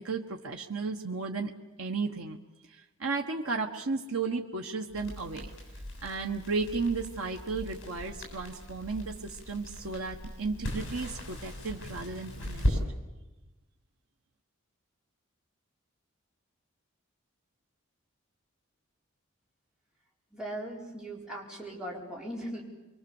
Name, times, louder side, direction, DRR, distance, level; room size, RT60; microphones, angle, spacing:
voice 1, 0.0-1.5 1.8-2.4 2.7-5.5 6.0-12.8, right 4 dB, 85° right, 2 dB, 1.3 m, -34 dB
Crackle, 4.9-12.8, equal, 60° left, 7.5 m, -37 dB
voice 2, 20.3-22.6, right 1 dB, 5° right, -4 dB, 4.4 m, -39 dB
25.5 x 23.5 x 7.2 m, 1.1 s
head